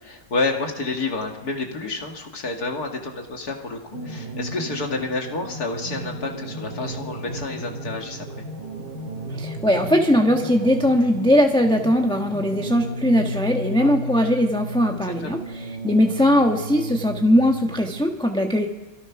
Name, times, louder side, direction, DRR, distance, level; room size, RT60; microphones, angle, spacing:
voice 1, 0.0-8.4 13.8-13.9 15.0-15.1, left 3 dB, 60° left, 2 dB, 2.6 m, -29 dB
sound 1, 3.9-18.0, right 1 dB, 85° right, 7.5 m, -34 dB
voice 2, 9.3-18.7, equal, 5° left, 2 dB, 1.1 m, -20 dB
28.0 x 23.5 x 5.9 m, 1.2 s
omnidirectional pair, 1.8 m